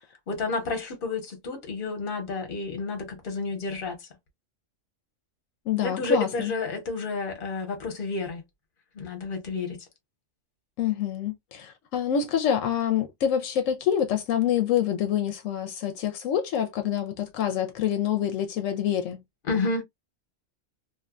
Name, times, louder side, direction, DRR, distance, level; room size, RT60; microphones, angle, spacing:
voice 1, 0.3-4.0 5.8-8.4 8.9-9.8 19.4-19.8, left 3 dB, 45° left, 1.1 m, -30 dB
voice 2, 5.7-6.5 10.8-19.2, left 9 dB, 80° left, 0.9 m, -26 dB
2.9 x 2.2 x 2.4 m
omnidirectional pair, 1.3 m